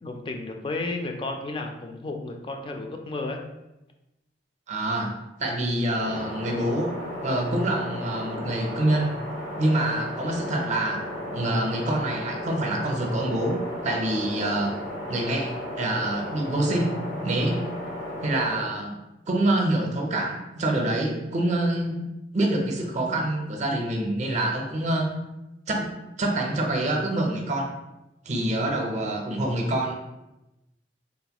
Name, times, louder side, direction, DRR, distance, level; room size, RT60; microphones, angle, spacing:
voice 1, 0.0-3.4, left 2 dB, 30° left, 3 dB, 0.3 m, -32 dB
voice 2, 4.7-5.1 5.4-6.9 7.2-9.1 9.6-11.0 11.3-13.6 13.8-14.7 15.1-16.9 17.2-17.6 18.2-19.0 19.3-22.1 22.3-25.1 25.7-25.9 26.2-27.7 28.3-29.9, right 1 dB, 40° right, 1 dB, 0.5 m, -26 dB
sound 1, 6.0-18.7, left 1 dB, 85° left, 0.9 m, -35 dB
3.8 x 2.1 x 2.8 m, 0.97 s
head